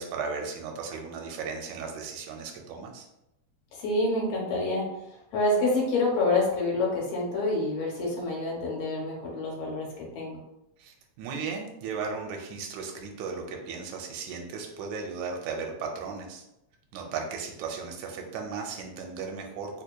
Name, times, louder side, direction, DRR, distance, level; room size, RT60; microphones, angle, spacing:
voice 1, 0.0-3.1 10.8-16.4 16.9-19.8, right 5 dB, 80° right, 2 dB, 1.9 m, -36 dB
voice 2, 3.7-4.9 5.3-10.4, left 2 dB, 70° left, -2 dB, 1.9 m, -27 dB
4.4 x 2.7 x 2.3 m, 0.87 s
omnidirectional pair, 3.3 m